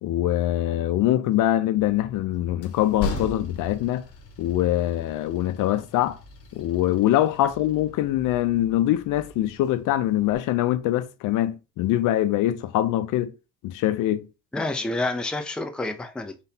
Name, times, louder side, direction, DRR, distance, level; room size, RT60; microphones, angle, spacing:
voice 1, 0.0-4.1 4.4-6.2 6.5-13.3 13.6-14.3, left 13 dB, 70° left, 0.5 m, -23 dB
Train, 1.8-10.4, left 3 dB, 45° left, 1.1 m, -39 dB
voice 2, 14.5-16.4, left 2 dB, 5° left, 0.4 m, -28 dB
4.0 x 3.9 x 2.7 m
cardioid pair, 125°, 33 cm